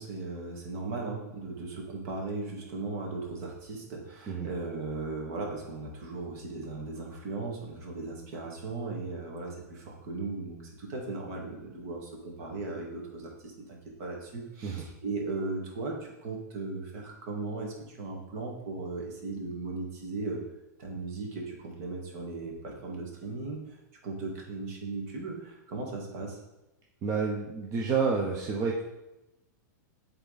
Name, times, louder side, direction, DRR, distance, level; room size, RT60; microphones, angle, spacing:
voice 1, 0.0-20.4 20.8-23.6 24.0-26.4, right 3 dB, 55° right, 0 dB, 1.9 m, -37 dB
voice 2, 27.0-28.8, right 5 dB, 30° right, -1 dB, 0.8 m, -29 dB
8.1 x 3.7 x 4.0 m, 0.95 s
hypercardioid pair, 130°, 10 cm